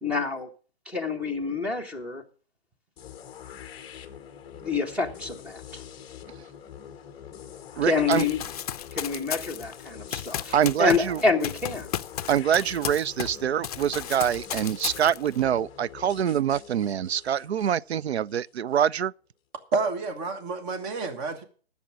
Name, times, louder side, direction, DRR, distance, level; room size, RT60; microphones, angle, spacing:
voice 1, 0.0-0.5 0.9-2.2 4.6-5.8 7.8-8.4 8.9-10.5 10.8-11.9, left 4 dB, 5° right, 1.1 m, -27 dB
sound 1, 3.0-18.8, left 9 dB, 15° left, 0.9 m, -45 dB
voice 2, 7.8-8.3 10.5-11.2 12.3-19.1, right 9 dB, 90° right, 0.5 m, -25 dB
Run, 8.1-13.4 13.6-15.4, left 10 dB, 40° left, 0.6 m, -34 dB
voice 3, 19.7-21.4, right 4 dB, 25° right, 1.4 m, -29 dB
11.5 x 7.2 x 6.2 m
hypercardioid pair, 150°, 31 cm